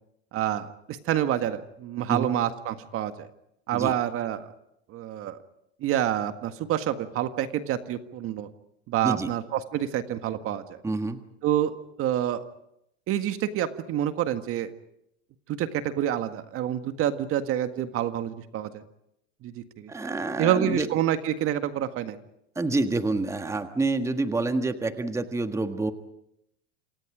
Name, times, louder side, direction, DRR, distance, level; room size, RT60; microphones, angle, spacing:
voice 1, 0.3-3.3 3.7-4.5 4.9-5.4 5.8-8.5 8.9-10.8 11.4-12.4 13.1-14.7 15.6-18.8 19.4-19.9 20.4-22.2, right 11 dB, 40° right, 9 dB, 1.8 m, -28 dB
voice 2, 10.8-11.2 19.9-20.9 22.5-25.9, right 3 dB, 10° right, 7 dB, 1.6 m, -27 dB
28.0 x 27.5 x 5.0 m, 0.77 s
supercardioid pair, 115°, 34 cm